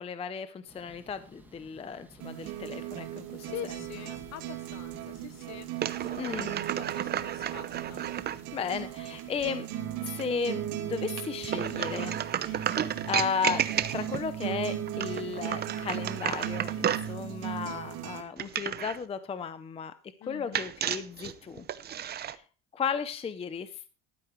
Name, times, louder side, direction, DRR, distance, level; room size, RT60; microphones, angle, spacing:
voice 1, 0.0-3.5 6.0-6.6 8.5-9.7 10.0-12.7 13.1-13.7 13.9-19.9 20.3-21.6 22.1-22.4 22.7-23.9, left 6 dB, 15° left, 13 dB, 0.6 m, -35 dB
sound 1, 0.7-9.6, right 1 dB, 5° right, 1.8 m, -56 dB
sound 2, 2.2-18.2, right 11 dB, 75° right, 2.6 m, -37 dB
voice 2, 3.4-6.5 6.7-8.0 20.2-20.7, left 11 dB, 45° left, 14 dB, 1.1 m, -44 dB
sound 3, 5.8-8.4 11.5-14.3 14.9-17.1 18.4-19.0 20.5-22.4, right 9 dB, 30° right, 0.7 m, -32 dB
13.0 x 12.5 x 3.1 m, 0.33 s
cardioid pair, 135°, 36 cm